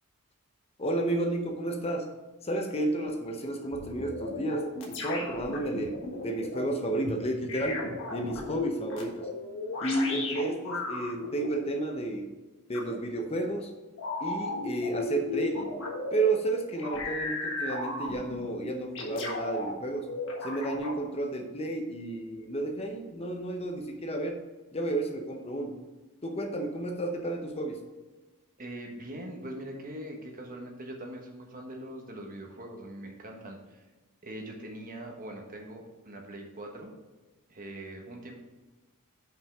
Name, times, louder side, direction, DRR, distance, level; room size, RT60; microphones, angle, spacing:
voice 1, 0.8-2.1 2.4-9.3 9.8-12.3 12.7-13.7 14.2-15.7 16.1-20.1 20.4-24.4 24.7-25.8 26.2-27.8, right 2 dB, 25° left, 3 dB, 0.7 m, -32 dB
sound 1, 3.7-6.7 7.5-11.5 12.7-12.9 14.0-16.3 16.8-18.5 18.9-19.7 20.1-21.0, left 3 dB, 60° left, 1.5 m, -35 dB
voice 2, 28.6-33.8 34.2-36.9 37.5-38.3, right 1 dB, 40° right, 1 dB, 1.3 m, -42 dB
5.7 x 5.4 x 6.0 m, 1.2 s
head